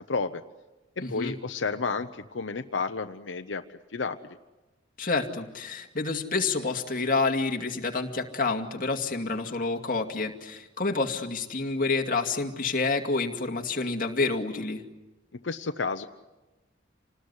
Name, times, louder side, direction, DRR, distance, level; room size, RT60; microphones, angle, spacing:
voice 1, 0.1-0.4 1.0-4.2 15.4-16.1, left 4 dB, 85° left, 7 dB, 0.9 m, -31 dB
voice 2, 1.0-1.3 5.0-14.8, left 3 dB, 45° left, 3 dB, 2.4 m, -28 dB
27.5 x 19.5 x 9.8 m, 1.1 s
head